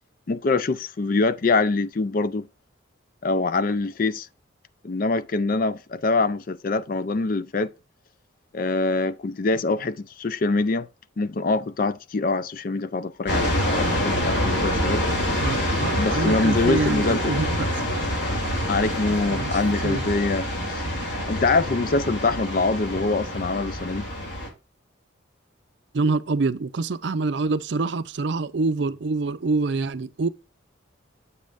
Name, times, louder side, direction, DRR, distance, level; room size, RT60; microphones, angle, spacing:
voice 1, 0.3-2.5 3.2-4.3 4.8-7.7 8.5-10.9 11.2-15.0 15.9-17.3 18.7-24.1, left 3 dB, 45° left, 0.4 m, -24 dB
sound 1, 13.3-24.5, equal, 60° left, 2.9 m, -26 dB
voice 2, 15.4-17.5 19.3-20.0 25.9-30.3, right 3 dB, 65° right, 0.5 m, -26 dB
8.2 x 7.2 x 2.5 m
head